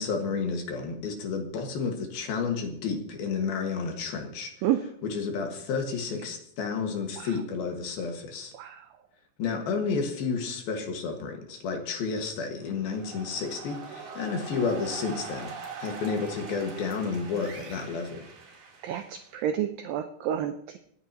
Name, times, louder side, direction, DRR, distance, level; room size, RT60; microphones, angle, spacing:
voice 1, 0.0-4.5 5.1-8.5 9.4-18.3, left 5 dB, 65° left, 3 dB, 3.3 m, -31 dB
voice 2, 8.5-8.9 18.8-20.8, right 11 dB, 90° right, 7 dB, 2.0 m, -30 dB
sound 1, 12.6-19.5, right 5 dB, 55° right, 4.2 m, -43 dB
27.5 x 9.4 x 2.9 m, 0.70 s
omnidirectional pair, 4.9 m